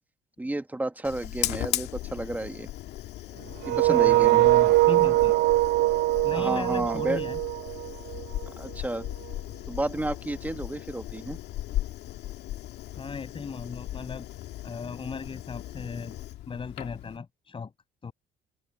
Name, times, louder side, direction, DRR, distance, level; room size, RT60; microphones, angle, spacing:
voice 1, 0.4-2.7 3.6-4.5 6.3-7.2 8.6-9.1 9.7-11.4, right 1 dB, 10° right, 1.4 m, -31 dB
Fire, 1.0-17.2, left 14 dB, 80° left, 2.1 m, -37 dB
sound 1, 3.6-8.5, right 19 dB, 75° right, 0.5 m, -22 dB
voice 2, 3.7-5.4 6.2-7.4 12.9-14.3 14.6-16.2 16.5-17.7 18.0-18.1, left 5 dB, 30° left, 7.4 m, -36 dB
open air
cardioid pair, 110°, 17 cm